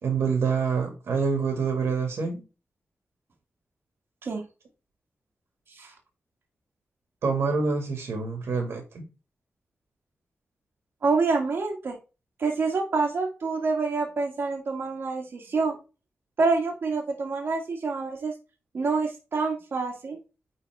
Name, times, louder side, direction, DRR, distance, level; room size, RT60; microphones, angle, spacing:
voice 1, 0.0-2.4 7.2-9.0, right 5 dB, 85° right, 4 dB, 2.0 m, -26 dB
voice 2, 11.0-12.0 12.4-15.7 16.4-18.3 18.7-20.2, right 4 dB, 60° right, 0 dB, 1.7 m, -27 dB
9.5 x 4.1 x 3.4 m, 0.30 s
wide cardioid pair, 110°, 4 cm